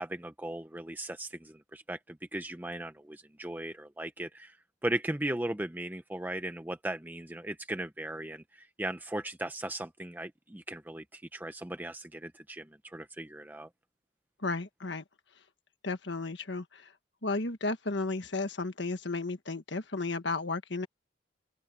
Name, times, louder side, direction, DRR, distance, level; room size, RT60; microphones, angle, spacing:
voice 1, 0.0-4.6 4.8-13.7, right 1 dB, 10° right, 0.6 m, -37 dB
voice 2, 14.4-15.0 15.8-16.9 17.2-20.9, left 3 dB, 70° left, 1.5 m, -33 dB
open air
head